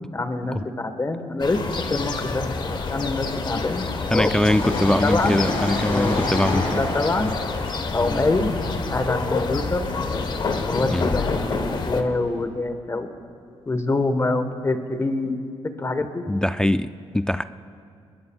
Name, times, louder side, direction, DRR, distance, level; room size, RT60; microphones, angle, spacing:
voice 1, 0.1-1.6 1.9-5.3 5.9-6.2 6.5-7.3 7.9-8.5 8.9-9.9 10.7-13.1 13.7-15.5 15.8-16.2, left 2 dB, 25° left, 8 dB, 1.3 m, -25 dB
sound 1, 1.4-12.0, left 4 dB, 45° left, 1.2 m, -28 dB
voice 2, 4.1-6.8 7.2-7.3 10.9-11.1 16.3-17.4, left 1 dB, 5° left, 11 dB, 0.3 m, -22 dB
Train, 4.5-11.9 12.2-12.3, left 2 dB, 70° left, 5.3 m, -30 dB
25.0 x 21.5 x 2.4 m, 2.3 s
cardioid pair, 100°, 10 cm